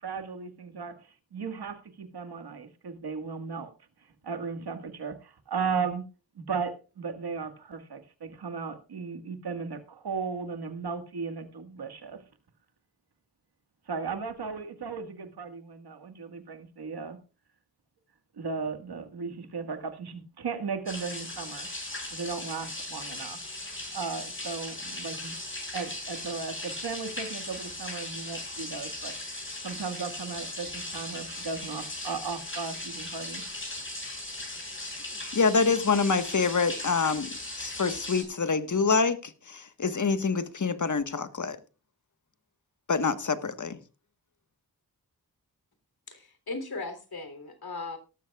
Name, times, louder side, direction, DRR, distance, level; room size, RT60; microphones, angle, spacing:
voice 1, 0.0-1.0 1.3-3.7 4.2-6.0 6.4-12.2 13.9-17.2 18.4-21.7 22.1-23.4 23.9-25.4 25.7-29.1 29.6-33.4, right 5 dB, 90° right, 1.8 m, -36 dB
sound 1, 20.9-38.2, left 1 dB, 30° left, 6.5 m, -38 dB
voice 2, 35.3-37.3 37.6-41.6 42.9-43.8, left 4 dB, 50° left, 1.4 m, -26 dB
voice 3, 46.1-48.0, left 3 dB, 75° left, 3.3 m, -37 dB
18.5 x 13.0 x 2.4 m
wide cardioid pair, 65°, 37 cm